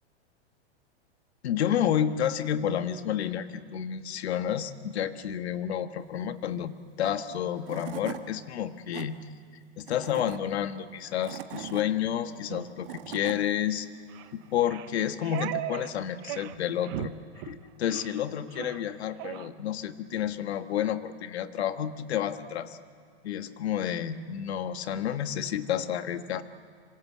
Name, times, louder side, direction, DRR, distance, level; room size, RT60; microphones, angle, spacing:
voice 1, 1.4-9.3 9.8-13.9 14.3-17.1 17.4-22.8 23.2-26.4, left 10 dB, 70° left, 9 dB, 1.6 m, -30 dB
Tools / Wood, 7.3-7.4 7.7-8.2 8.7-9.1 9.8-10.4 11.0-11.8 12.6-13.4, right 11 dB, 55° right, 1.7 m, -40 dB
sound 1, 12.5-12.7 13.2-13.4 14.1-14.3 14.6-15.9 16.2-16.6 16.8-17.1 17.4-17.6 17.9-18.2 18.5-18.8 19.2-19.5, right 13 dB, 25° right, 0.6 m, -37 dB
26.5 x 25.5 x 7.5 m, 2.3 s
supercardioid pair, 175°, 33 cm